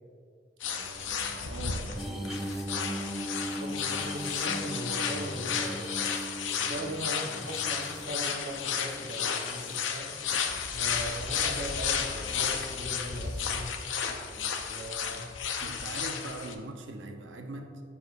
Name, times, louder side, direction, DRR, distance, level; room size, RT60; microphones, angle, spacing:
sound 1, 0.6-16.5, left 7 dB, 85° left, 0.6 m, -33 dB
voice 1, 0.6-2.5 14.1-15.2 15.6-17.8, right 2 dB, 85° right, 5 dB, 0.7 m, -43 dB
sound 2, 2.0-10.3 10.9-11.6 12.8-13.2 14.9-15.0, equal, ahead, 0.3 m, -39 dB
voice 2, 3.6-6.1 6.6-10.1 10.7-13.7 14.6-15.2, equal, 60° right, 1 dB, 1.0 m, -39 dB
12.5 x 4.7 x 2.5 m, 2.2 s
head